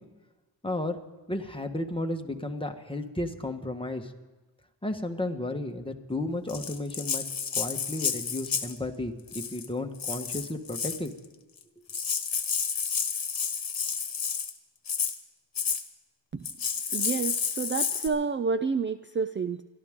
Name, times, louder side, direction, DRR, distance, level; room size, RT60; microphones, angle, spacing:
voice 1, 0.6-1.0 1.3-4.1 4.8-7.2 7.5-11.1, left 1 dB, 10° left, 4 dB, 1.4 m, -33 dB
Rattle (instrument), 6.5-8.8 9.3-9.7 10.0-11.1 11.6-11.7 11.9-14.5 14.9-15.2 15.6-15.8 16.4-18.1, left 6 dB, 55° left, 1.4 m, -30 dB
voice 2, 16.9-19.6, right 5 dB, 30° right, 11 dB, 0.4 m, -29 dB
29.5 x 12.5 x 3.7 m, 1.2 s
wide cardioid pair, 95°, 41 cm